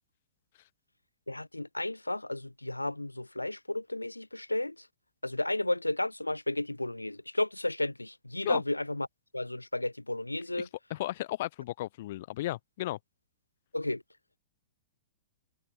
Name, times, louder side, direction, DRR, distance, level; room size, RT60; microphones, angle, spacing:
voice 1, 1.3-4.9 5.2-9.1 9.3-10.7 13.7-14.0, left 1 dB, 90° left, 1.3 m, -33 dB
voice 2, 10.5-13.0, left 15 dB, 50° left, 1.3 m, -35 dB
open air
figure-of-eight pair, 105°, 0 cm